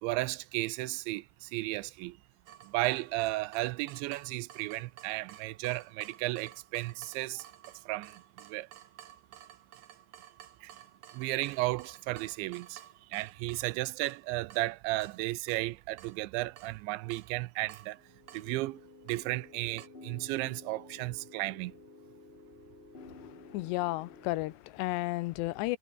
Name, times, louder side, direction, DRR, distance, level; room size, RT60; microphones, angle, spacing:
voice 1, 0.0-2.2 2.6-7.5 7.9-8.7 10.6-10.7 11.1-12.8 13.1-18.0 18.3-18.8 19.1-21.7, right 20 dB, 85° right, 2.9 m, -34 dB
Water tap faucet / Drip, 2.5-19.9, right 11 dB, 60° right, 2.1 m, -54 dB
sound 1, 18.0-24.5, left 2 dB, 15° left, 2.3 m, -53 dB
voice 2, 23.0-25.8, left 19 dB, 80° left, 2.6 m, -33 dB
omnidirectional pair, 5.4 m